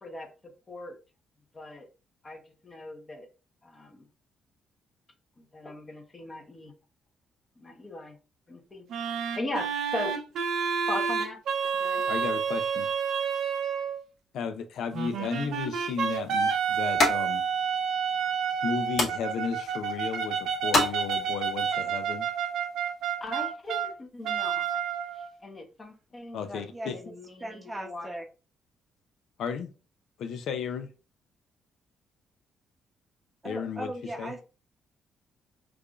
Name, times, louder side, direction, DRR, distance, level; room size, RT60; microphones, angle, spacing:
voice 1, 0.0-0.3 0.7-1.0 1.5-1.9 2.2-3.3 3.6-4.1 5.4-6.7 7.6-8.2 8.5-8.9 9.3-10.1 10.9-11.4 11.8-12.1 23.2-24.8 25.1-26.6 27.0-28.1, left 2 dB, 30° left, 1.0 m, -39 dB
sound 1, 8.9-14.0 14.9-23.9 24.2-25.3, right 7 dB, 75° right, 0.6 m, -29 dB
voice 2, 12.1-12.9 14.3-17.4 18.6-22.3 26.3-27.0 29.4-29.7 30.2-30.9 33.4-33.9 34.2-34.3, left 6 dB, 75° left, 0.5 m, -34 dB
sound 2, 15.3-21.6, left 2 dB, 55° left, 1.5 m, -33 dB
voice 3, 27.4-28.3 33.4-34.4, right 1 dB, 20° right, 0.7 m, -38 dB
4.7 x 2.5 x 2.3 m
cardioid pair, 90°, 0 cm